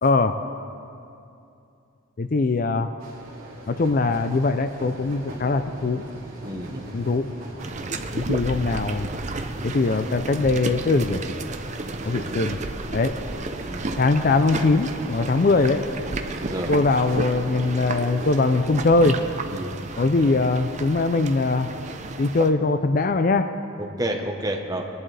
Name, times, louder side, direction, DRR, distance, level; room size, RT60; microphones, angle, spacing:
voice 1, 0.0-0.4 2.2-2.9 3.7-6.0 6.9-7.3 8.1-9.1 9.6-11.2 12.0-12.6 12.9-13.1 14.0-15.8 16.7-19.2 20.0-21.7 22.2-23.5, left 3 dB, 40° left, 9 dB, 0.4 m, -21 dB
sound 1, 3.0-18.4, right 1 dB, 75° right, 2.8 m, -39 dB
voice 2, 6.4-6.8 13.7-13.9 16.5-16.7 19.5-19.8 23.8-24.8, right 1 dB, 20° right, 2 dB, 0.9 m, -29 dB
sound 2, 7.6-22.5, right 3 dB, 35° right, 0.6 m, -33 dB
21.5 x 11.0 x 3.4 m, 2.6 s
head